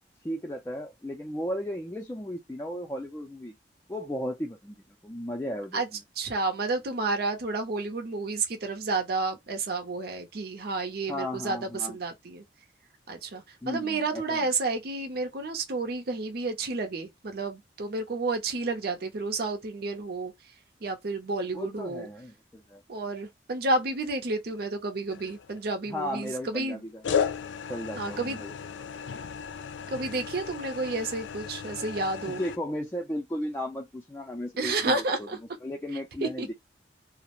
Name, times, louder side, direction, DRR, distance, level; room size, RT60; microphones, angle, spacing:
voice 1, 0.2-3.5 3.9-4.8 5.0-5.8 11.1-12.0 13.6-14.4 21.5-22.8 25.9-27.2 27.7-28.9 32.3-35.3 35.6-36.5, equal, 15° left, 0.4 m, -35 dB
voice 2, 6.2-12.4 13.1-20.3 20.8-22.1 22.9-26.8 28.0-28.4 29.9-32.4 34.6-35.4 36.2-36.5, right 3 dB, 60° right, 0.6 m, -31 dB
sound 1, 25.1-25.8 27.0-32.6, left 7 dB, 80° left, 0.3 m, -34 dB
2.4 x 2.0 x 2.9 m
head